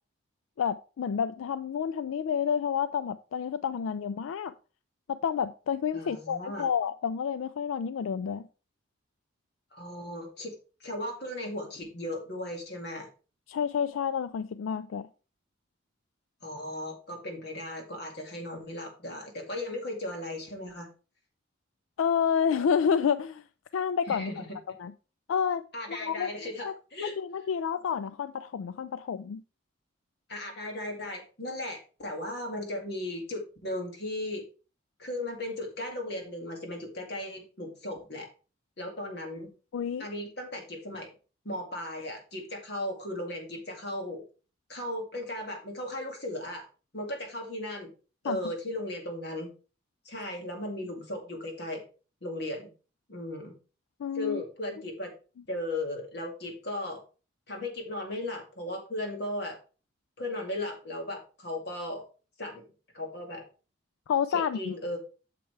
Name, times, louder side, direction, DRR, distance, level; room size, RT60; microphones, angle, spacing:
voice 1, 0.6-4.5 5.1-8.5 13.5-15.1 22.0-23.4 23.7-24.3 24.8-24.9 25.3-25.6 25.9-26.3 26.6-26.7 27.0-29.4 39.7-40.1 48.2-48.4 54.0-54.4 64.1-64.7, left 7 dB, 85° left, 0.3 m, -29 dB
voice 2, 5.9-6.7 9.7-10.5 10.8-13.1 16.4-20.9 24.1-24.5 25.7-27.1 30.3-34.4 35.0-38.3 38.8-39.5 40.0-41.1 41.4-44.2 44.7-46.7 46.9-47.9 48.2-49.5 50.1-51.8 52.2-52.7 53.1-53.5 54.1-55.1 55.5-57.0 57.5-59.6 60.2-62.1 62.4-62.7 62.9-63.4 64.3-65.0, left 1 dB, 55° left, 2.2 m, -36 dB
8.6 x 6.8 x 3.3 m
head